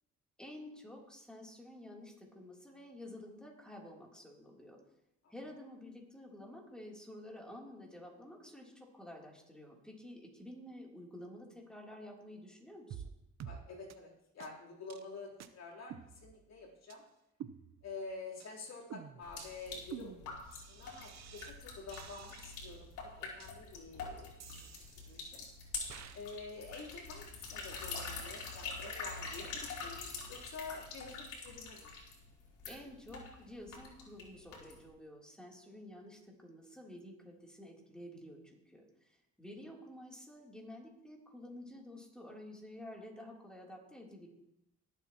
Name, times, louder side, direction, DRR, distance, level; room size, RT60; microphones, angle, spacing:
voice 1, 0.4-4.8 5.3-13.0 32.6-44.3, left 1 dB, 5° left, -2 dB, 3.2 m, -51 dB
sound 1, 12.9-13.1 13.4-13.6 13.9-14.0 14.4-14.5 14.9-15.1 15.4-15.5 15.9-16.5 16.9-17.0 17.4-18.0 18.4-18.6 18.9-21.5 21.9-22.8 23.4-23.5 24.4-25.4 25.9-26.2, right 8 dB, 60° right, 0.8 m, -50 dB
voice 2, 13.4-17.0 17.8-24.3 24.6-25.4 26.1-31.9, left 4 dB, 60° left, -3 dB, 3.7 m, -49 dB
sound 2, 19.2-34.9, left 4 dB, 85° left, 3.4 m, -45 dB
20.5 x 8.0 x 3.0 m, 0.87 s
cardioid pair, 90°, 30 cm